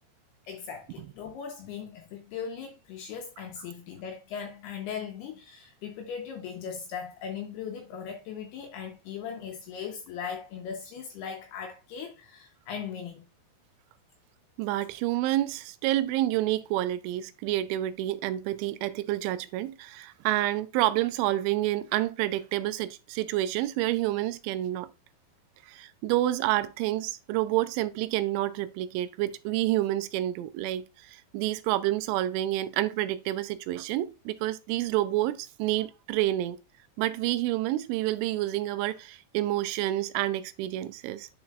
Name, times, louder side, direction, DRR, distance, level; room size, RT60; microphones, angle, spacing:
voice 1, 0.5-13.3, left 7 dB, 75° left, 2.5 m, -39 dB
voice 2, 14.6-24.9 25.6-36.6 37.0-41.3, right 15 dB, 90° right, 3.0 m, -29 dB
11.0 x 4.2 x 2.4 m
omnidirectional pair, 5.5 m